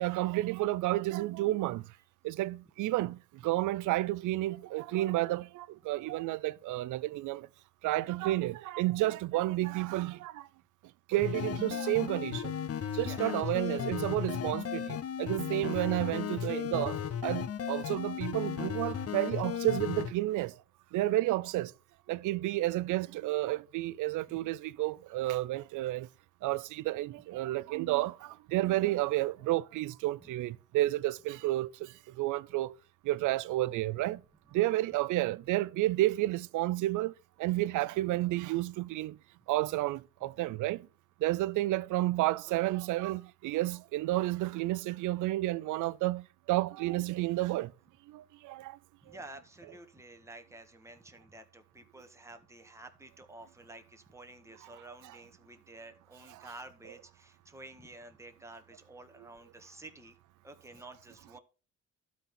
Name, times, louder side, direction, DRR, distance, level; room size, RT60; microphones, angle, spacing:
voice 1, 0.0-1.8 2.2-3.1 3.4-7.4 7.8-10.3 11.1-12.4 13.0-14.8 15.2-17.0 17.2-20.5 20.9-21.7 22.1-26.1 26.4-28.1 28.5-31.7 32.2-32.7 33.1-34.2 34.5-37.1 37.4-39.1 39.5-40.8 41.2-46.2 46.5-47.7 48.5-48.6, right 17 dB, 80° right, 0.5 m, -31 dB
sound 1, 11.2-20.1, left 8 dB, 50° left, 1.0 m, -35 dB
voice 2, 12.9-13.3 13.6-13.7 30.2-30.3 49.0-60.2 60.4-61.4, right 2 dB, 10° right, 1.6 m, -51 dB
12.5 x 4.2 x 5.8 m
cardioid pair, 90°, 30 cm